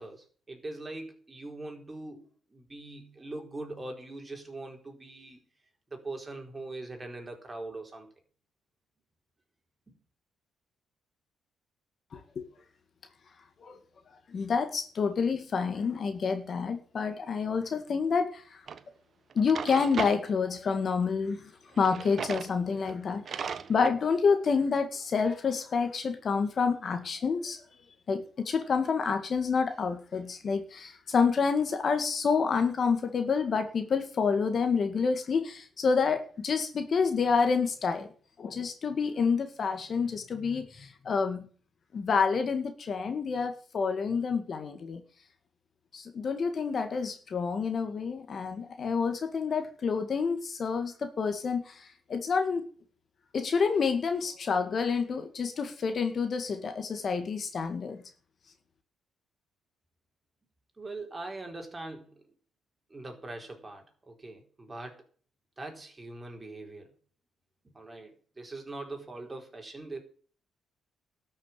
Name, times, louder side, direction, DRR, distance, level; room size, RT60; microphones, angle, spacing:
voice 1, 0.0-5.4 5.9-8.1 9.9-10.0 60.8-62.2 62.9-65.0 65.6-66.9 67.7-70.0, right 2 dB, 20° right, 3 dB, 4.3 m, -42 dB
voice 2, 12.1-12.5 13.6-13.8 14.3-18.6 19.4-21.5 21.8-27.6 28.1-38.1 38.4-41.5 41.9-45.0 45.9-52.6 53.3-58.0, left 5 dB, 50° left, 8 dB, 1.9 m, -28 dB
Drawer open or close, 18.7-18.8 19.3-20.2 21.7-22.5 22.9-23.0 23.3-24.0, right 6 dB, 50° right, 1.0 m, -36 dB
12.5 x 6.6 x 9.8 m, 0.43 s
cardioid pair, 90°, 0 cm